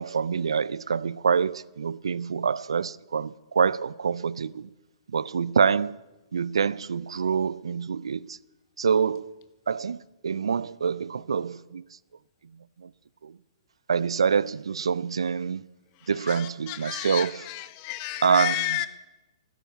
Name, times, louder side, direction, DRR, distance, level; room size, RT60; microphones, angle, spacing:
voice 1, 0.0-4.5 5.1-5.9 6.3-8.2 8.8-9.3 9.7-10.0 10.2-11.8 13.9-15.6 16.1-17.3 18.2-18.6, right 6 dB, 80° right, 0.4 m, -25 dB
voice 2, 16.0-18.9, left 17 dB, 40° left, 1.0 m, -32 dB
13.0 x 10.5 x 8.4 m
hypercardioid pair, 120°, 3 cm